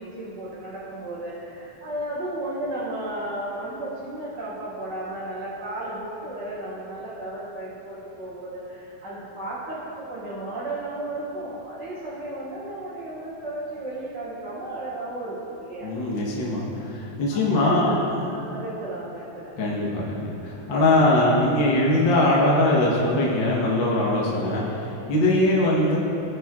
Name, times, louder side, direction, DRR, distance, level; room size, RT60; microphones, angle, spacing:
voice 1, 0.0-15.9 17.3-19.6, right 1 dB, 45° right, -14 dB, 3.0 m, -34 dB
voice 2, 15.8-18.0 19.6-26.0, left 1 dB, 60° left, -5 dB, 1.3 m, -21 dB
16.5 x 8.3 x 2.5 m, 3.0 s
omnidirectional pair, 3.7 m